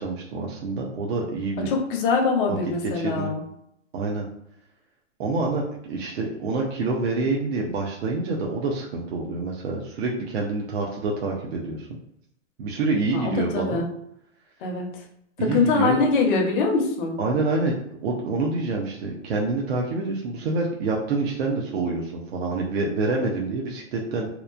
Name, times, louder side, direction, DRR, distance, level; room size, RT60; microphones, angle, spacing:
voice 1, 0.0-1.7 2.5-3.3 3.9-4.3 5.2-11.9 12.6-13.8 15.4-16.0 17.2-17.7 18.0-24.3, right 3 dB, 55° right, -2 dB, 0.6 m, -27 dB
voice 2, 1.7-3.4 13.1-13.9 14.6-14.9 15.4-17.2, left 4 dB, 45° left, 1 dB, 0.7 m, -23 dB
2.9 x 2.1 x 2.4 m, 0.75 s
hypercardioid pair, 145°, 37 cm